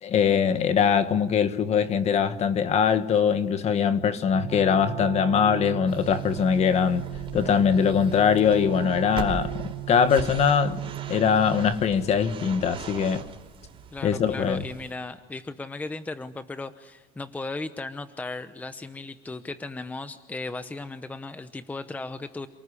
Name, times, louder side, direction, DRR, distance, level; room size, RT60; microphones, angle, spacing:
voice 1, 0.0-7.1 7.3-13.2 14.0-14.6, left 7 dB, 35° left, 1.5 m, -22 dB
sound 1, 4.3-11.7, right 19 dB, 80° right, 1.2 m, -36 dB
sound 2, 5.9-14.9, right 5 dB, 30° right, 4.8 m, -40 dB
voice 2, 13.9-22.5, left 3 dB, 10° left, 0.9 m, -36 dB
28.5 x 19.5 x 10.0 m
cardioid pair, 145°, 18 cm